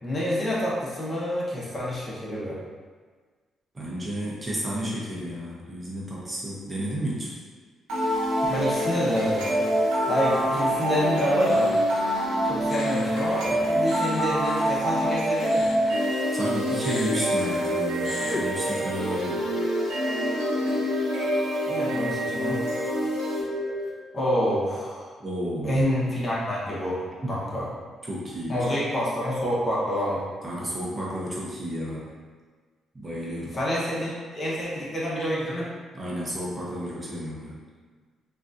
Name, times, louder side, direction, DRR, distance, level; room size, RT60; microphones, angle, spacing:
voice 1, 0.0-2.6 8.5-9.6 10.1-11.7 12.4-15.7 21.7-22.6 24.1-25.1 25.6-27.0 27.3-27.7 28.5-30.2 33.5-35.7, equal, 30° left, -6 dB, 0.9 m, -27 dB
voice 2, 3.7-7.3 16.3-19.4 25.2-25.7 27.2-27.4 28.1-28.6 30.4-32.1 32.9-33.6 35.9-37.5, equal, 25° right, -6 dB, 0.8 m, -32 dB
sound 1, 7.9-23.9, equal, 80° right, 0.9 m, -26 dB
sound 2, 10.3-16.5 16.8-18.4, left 4 dB, 55° left, 0.3 m, -41 dB
3.7 x 2.4 x 2.5 m, 1.5 s
cardioid pair, 90°, 0 cm